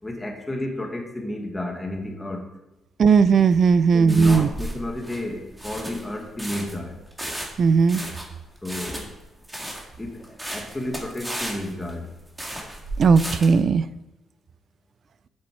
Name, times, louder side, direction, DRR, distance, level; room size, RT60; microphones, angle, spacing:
voice 1, 0.0-2.4 3.9-7.0 8.6-9.2 10.0-12.1, left 1 dB, 15° left, 2 dB, 1.8 m, -32 dB
voice 2, 3.0-4.5 7.6-8.0 13.0-13.8, right 5 dB, 50° right, 15 dB, 0.4 m, -17 dB
sound 1, 3.5-13.6, right 1 dB, 10° right, 1.9 m, -35 dB
7.6 x 7.2 x 4.5 m, 1.0 s
cardioid pair, 90°, 0 cm